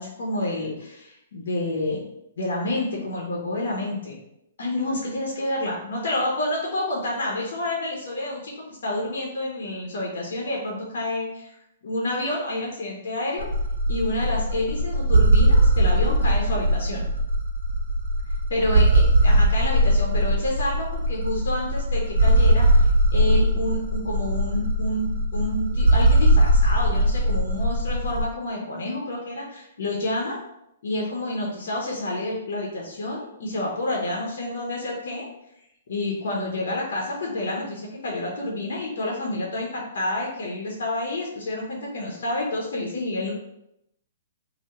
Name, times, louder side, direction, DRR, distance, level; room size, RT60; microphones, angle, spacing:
voice 1, 0.0-2.0 2.4-4.2 4.6-11.5 11.8-13.5 13.9-17.1 18.5-30.4 30.8-35.3 35.9-43.3, left 1 dB, 65° left, -2 dB, 0.6 m, -29 dB
sound 1, 13.4-28.2, right 1 dB, 65° right, 0.4 m, -20 dB
2.2 x 2.0 x 2.8 m, 0.82 s
hypercardioid pair, 125°, 0 cm